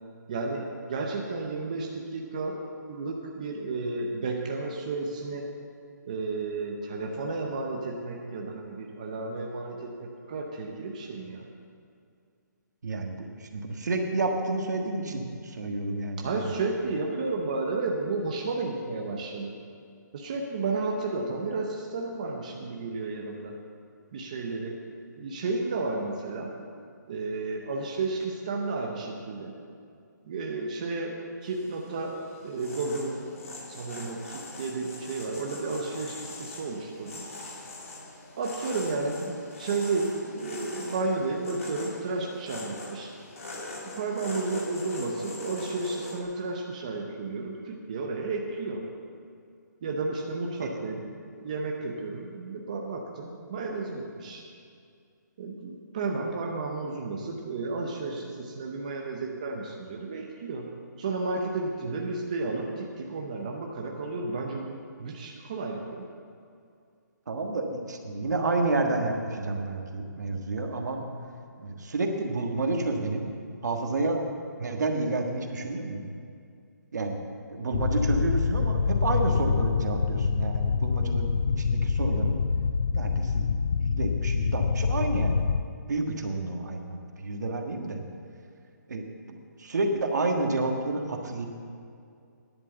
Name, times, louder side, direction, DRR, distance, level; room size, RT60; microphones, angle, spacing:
voice 1, 0.3-2.6 2.9-5.5 6.1-11.5 16.2-19.5 20.1-23.6 24.1-24.8 25.2-26.5 27.1-29.5 30.2-32.2 32.4-33.2 33.7-37.2 38.4-43.1 43.8-48.8 49.8-51.1 51.3-54.4 55.4-66.1, right 3 dB, 20° right, 0 dB, 0.6 m, -32 dB
voice 2, 12.8-16.5 50.6-50.8 61.9-62.0 67.3-71.0 71.6-73.2 73.6-74.2 74.6-76.1 76.9-77.2 77.5-82.4 82.9-85.4 85.9-88.0 88.9-91.5, right 2 dB, 60° right, 3 dB, 1.5 m, -30 dB
sound 1, 31.4-46.2, left 2 dB, 45° left, 1.9 m, -42 dB
sound 2, 77.7-85.6, left 5 dB, 65° left, 0.5 m, -26 dB
10.5 x 7.5 x 7.7 m, 2.4 s
hypercardioid pair, 175°, 10 cm